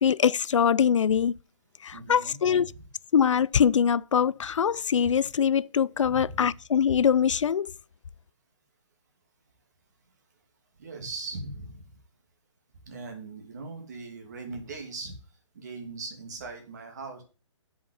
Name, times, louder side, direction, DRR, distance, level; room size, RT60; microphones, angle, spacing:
voice 1, 0.0-1.3 1.8-2.7 3.1-7.7, left 7 dB, 75° left, 0.4 m, -23 dB
voice 2, 1.9-2.8 6.1-6.5 10.8-11.9 12.8-15.1 15.5-17.2, right 3 dB, 35° right, 2.6 m, -40 dB
7.8 x 5.7 x 7.7 m
hypercardioid pair, 175°, 16 cm